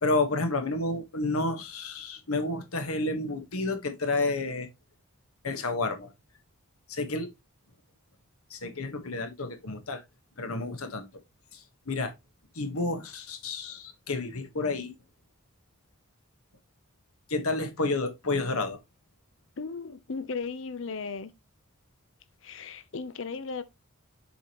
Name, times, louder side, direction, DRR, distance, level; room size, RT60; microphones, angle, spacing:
voice 1, 0.0-4.7 5.4-6.1 6.9-7.3 8.5-10.0 10.4-11.1 11.5-12.1 12.5-14.9 17.3-18.8, left 2 dB, 75° left, 1.4 m, -30 dB
voice 2, 19.6-21.3 22.4-23.6, left 4 dB, 55° left, 0.6 m, -36 dB
7.1 x 5.1 x 3.0 m
head